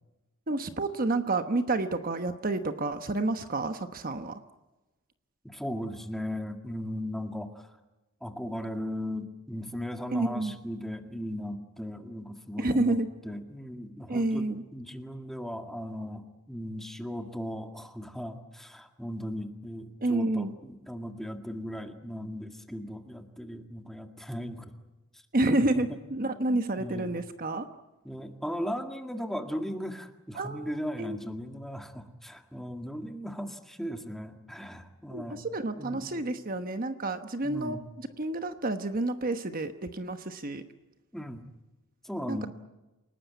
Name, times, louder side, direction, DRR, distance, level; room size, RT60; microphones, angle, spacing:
voice 1, 0.5-4.4 10.1-10.6 12.6-13.1 14.1-14.6 20.0-20.5 25.3-27.7 30.4-31.2 35.1-40.6 42.3-42.5, right 2 dB, 40° right, 8 dB, 1.1 m, -29 dB
voice 2, 5.4-7.7 8.2-24.7 25.7-26.0 26.2-27.1 28.0-35.5 35.8-36.2 37.4-37.9 41.1-41.4 42.0-42.5, equal, ahead, 5 dB, 1.8 m, -37 dB
28.5 x 18.5 x 9.4 m, 1.1 s
head